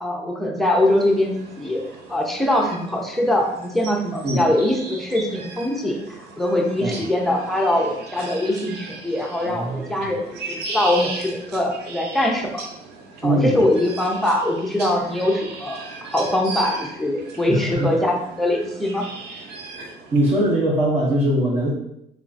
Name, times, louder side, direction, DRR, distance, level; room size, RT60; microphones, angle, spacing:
voice 1, 0.0-1.8 2.1-12.6 13.2-19.1, left 1 dB, ahead, -1 dB, 0.7 m, -22 dB
sound 1, 0.8-20.4, right 3 dB, 75° right, 0.7 m, -37 dB
voice 2, 9.4-9.8 13.2-13.6 17.5-18.0 19.8-19.9 20.1-21.7, right 1 dB, 30° right, -8 dB, 1.1 m, -21 dB
3.6 x 3.4 x 2.6 m, 0.78 s
cardioid pair, 110°, 17 cm